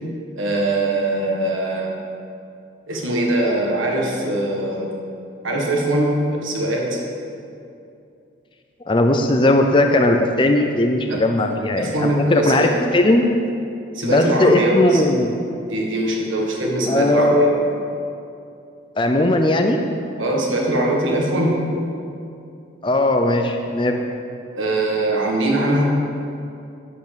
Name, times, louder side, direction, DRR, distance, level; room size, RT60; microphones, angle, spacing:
voice 1, 0.4-1.9 2.9-4.9 5.4-7.0 11.1-11.2 11.8-12.7 13.9-15.0 15.7-17.5 20.2-21.6 24.5-25.9, right 1 dB, 90° right, -1 dB, 1.7 m, -21 dB
voice 2, 8.9-13.3 14.0-15.3 16.9-17.6 19.0-19.8 22.8-24.0, left 1 dB, 25° left, 4 dB, 0.5 m, -18 dB
8.4 x 7.9 x 6.9 m, 2.6 s
head